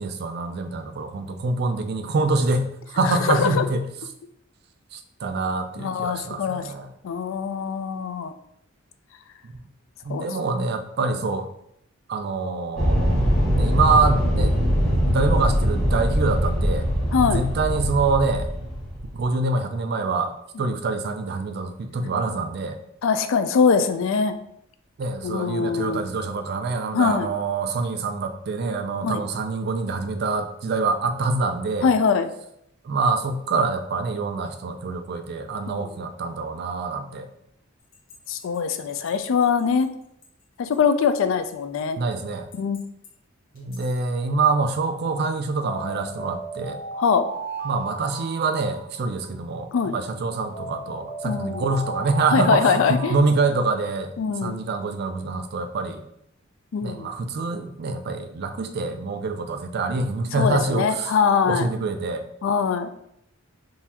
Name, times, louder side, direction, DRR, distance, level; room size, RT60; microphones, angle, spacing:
voice 1, 0.0-3.9 4.9-6.9 9.4-9.5 10.0-11.5 12.1-13.2 13.5-14.6 14.8-16.9 17.3-18.5 19.1-20.3 20.6-22.8 25.0-31.9 32.8-37.3 42.0-42.5 43.5-46.8 47.6-54.2 54.4-56.0 56.8-61.2 61.4-62.2, right 3 dB, 50° right, 8 dB, 0.4 m, -25 dB
voice 2, 3.0-3.7 5.8-6.7 7.0-8.3 10.1-10.3 17.1-17.4 20.6-20.7 23.0-24.3 25.2-26.1 26.9-27.3 29.0-29.2 31.8-32.3 35.7-35.8 38.3-39.9 40.6-42.0 42.6-42.8 47.0-47.3 49.7-49.9 51.2-51.7 52.3-53.2 54.2-54.5 56.7-57.1 60.3-61.7 62.4-62.9, left 6 dB, 65° left, 10 dB, 0.3 m, -22 dB
sound 1, 12.8-19.2, equal, ahead, 1.3 m, -22 dB
sound 2, 37.9-39.8 40.2-40.3 40.7-40.8 41.5-41.9 42.5-43.1 43.5-43.9 45.6-49.4 50.5-53.2, right 4 dB, 45° left, 1.0 m, -36 dB
3.8 x 2.6 x 2.8 m, 0.75 s
head